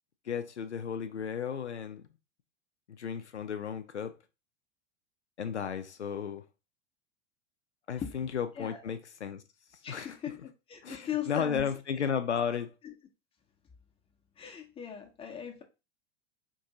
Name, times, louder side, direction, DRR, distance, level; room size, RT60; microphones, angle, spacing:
voice 1, 0.3-2.0 2.9-4.1 5.4-6.4 7.9-9.4 9.9-10.2 10.8-12.7, left 7 dB, 85° left, 0.5 m, -34 dB
voice 2, 8.0-8.3 8.6-8.8 9.8-11.7 12.1-12.2 12.8-12.9 14.4-15.6, left 9 dB, 15° left, 0.7 m, -39 dB
4.5 x 2.6 x 2.8 m
figure-of-eight pair, 85°, 33 cm